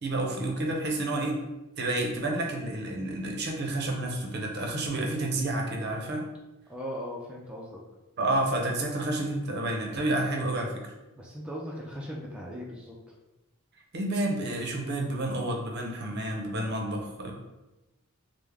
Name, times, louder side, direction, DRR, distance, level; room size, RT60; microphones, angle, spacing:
voice 1, 0.0-1.4 1.8-6.3 8.2-10.9 13.9-17.3, right 1 dB, 50° right, 1 dB, 0.6 m, -30 dB
voice 2, 6.7-7.8 11.2-13.1, equal, 5° right, -4 dB, 0.3 m, -38 dB
3.3 x 2.0 x 3.4 m, 1.0 s
head